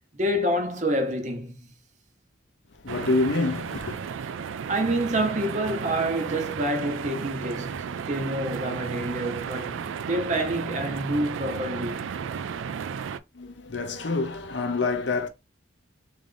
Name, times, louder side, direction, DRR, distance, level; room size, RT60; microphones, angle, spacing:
voice 1, 0.2-1.7 4.5-12.2, right 1 dB, 40° right, 0.9 m, -28 dB
voice 2, 2.8-4.0 13.3-15.3, left 3 dB, 65° left, 0.7 m, -27 dB
sound 1, 2.9-13.2, right 6 dB, 80° right, 0.3 m, -34 dB
3.7 x 2.6 x 3.4 m
head